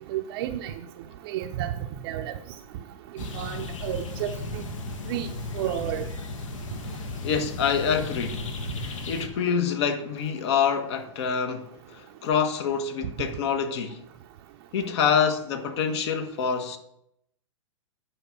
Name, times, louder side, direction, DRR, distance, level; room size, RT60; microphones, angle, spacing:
voice 1, 0.1-0.7 1.3-1.7 2.0-2.4 3.1-4.6 5.1-5.3 5.5-6.1, right 11 dB, 45° right, 0.6 m, -31 dB
sound 1, 3.2-9.3, left 3 dB, 70° left, 1.3 m, -35 dB
voice 2, 6.8-8.5 8.8-14.0 14.7-16.8, left 7 dB, 55° left, 1.3 m, -26 dB
8.9 x 4.7 x 5.7 m
hypercardioid pair, 115°, 17 cm